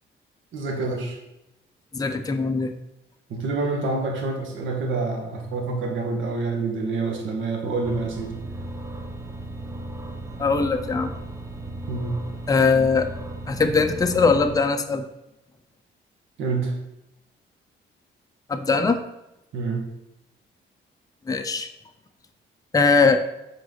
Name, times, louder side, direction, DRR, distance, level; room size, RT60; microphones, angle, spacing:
voice 1, 0.5-1.2 3.3-8.3 11.9-12.2 16.4-16.7 19.5-19.8, right 3 dB, 75° right, 1 dB, 1.8 m, -27 dB
voice 2, 1.9-2.7 10.4-11.1 12.5-13.1 13.5-15.1 18.5-19.0 21.3-21.7 22.7-23.2, left 4 dB, 20° left, 6 dB, 0.7 m, -20 dB
sound 1, 7.8-14.6, right 1 dB, 15° right, 0.8 m, -36 dB
7.9 x 5.1 x 4.1 m, 0.90 s
cardioid pair, 90°, 20 cm